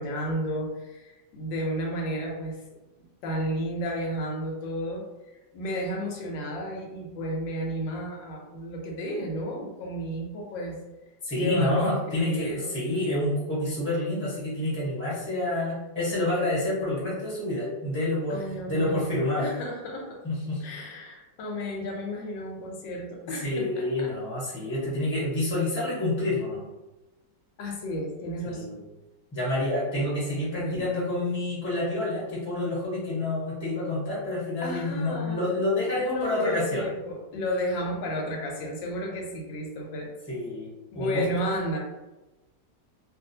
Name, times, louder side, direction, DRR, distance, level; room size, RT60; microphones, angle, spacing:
voice 1, 0.0-2.6 3.0-10.8 11.3-12.8 18.3-20.2 20.6-24.1 27.6-28.9 30.6-30.9 34.6-35.5 35.9-40.1 40.9-41.8, equal, 85° left, 0 dB, 1.4 m, -32 dB
voice 2, 11.2-18.4 18.7-19.5 20.2-20.6 23.3-26.6 28.4-28.8 29.3-36.8 40.3-41.2, left 1 dB, 10° left, -8 dB, 0.9 m, -28 dB
3.0 x 2.6 x 2.7 m, 1.0 s
omnidirectional pair, 1.9 m